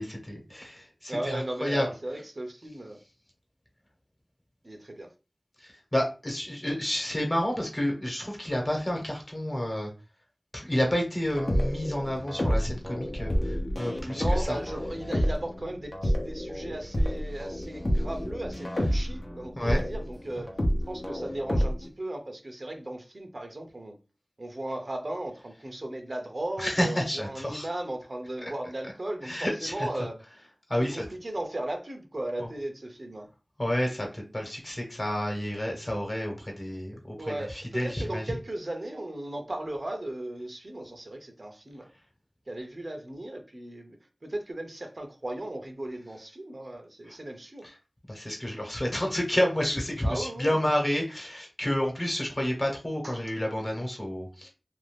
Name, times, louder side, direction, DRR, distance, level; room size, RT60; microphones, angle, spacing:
voice 1, 0.0-1.9 5.6-9.9 10.5-14.6 19.5-19.8 26.6-27.7 28.4-28.5 29.2-29.9 30.7-31.0 32.4-32.5 33.6-38.2 47.1-47.2 47.6-47.7 48.1-54.5, left 1 dB, 40° left, 1.1 m, -30 dB
voice 2, 1.1-3.0 4.6-5.1 14.0-20.5 20.9-24.0 24.4-30.2 30.8-33.3 37.2-41.9 42.5-44.0 44.2-47.6 50.0-50.6 53.0-53.2, right 1 dB, 60° right, 0.6 m, -36 dB
sound 1, 11.3-21.9, equal, 65° left, 0.8 m, -29 dB
2.5 x 2.4 x 3.3 m
wide cardioid pair, 50°, 0 cm